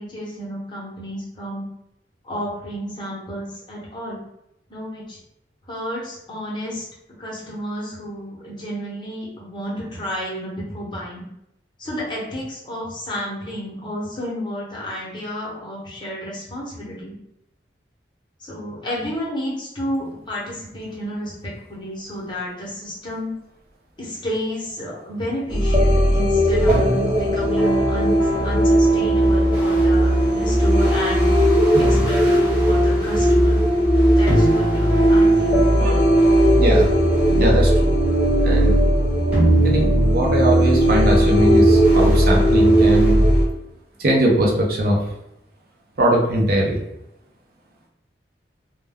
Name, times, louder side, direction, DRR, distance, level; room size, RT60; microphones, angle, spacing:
voice 1, 0.0-1.7 2.2-4.2 4.7-5.2 5.7-6.8 7.2-11.2 11.8-17.1 18.4-23.3 24.0-31.3 31.6-33.6 34.2-35.6, equal, 25° left, -5 dB, 0.8 m, -31 dB
sound 1, 25.5-43.4, right 1 dB, 5° right, 0.8 m, -17 dB
voice 2, 36.5-36.9 37.4-37.9 38.4-38.8 39.6-43.2 44.0-45.0 46.0-46.8, right 1 dB, 60° right, -2 dB, 0.6 m, -20 dB
2.2 x 2.2 x 3.4 m, 0.82 s
head